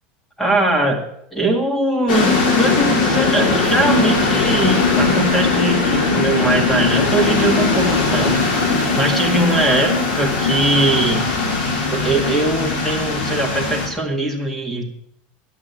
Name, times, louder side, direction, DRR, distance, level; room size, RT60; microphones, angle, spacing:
voice 1, 0.4-1.0 1.3-8.4 8.7-11.3 11.9-14.9, right 2 dB, 5° left, 3 dB, 2.0 m, -21 dB
sound 1, 2.1-13.9, left 3 dB, 90° left, 4.0 m, -19 dB
11.0 x 8.6 x 8.3 m, 0.73 s
supercardioid pair, 170°, 5 cm